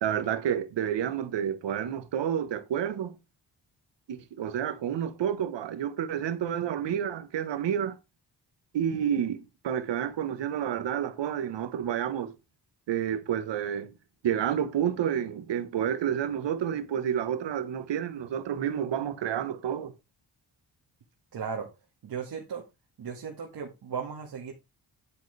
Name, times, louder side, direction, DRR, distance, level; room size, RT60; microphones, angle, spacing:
voice 1, 0.0-3.1 4.1-7.9 8.7-9.4 9.6-12.3 12.9-13.9 14.2-19.9, right 9 dB, 85° right, 1.4 m, -29 dB
voice 2, 21.3-21.7 22.0-22.6 23.0-24.5, right 6 dB, 60° right, 2.0 m, -36 dB
9.3 x 8.5 x 3.4 m
wide cardioid pair, 120°, 42 cm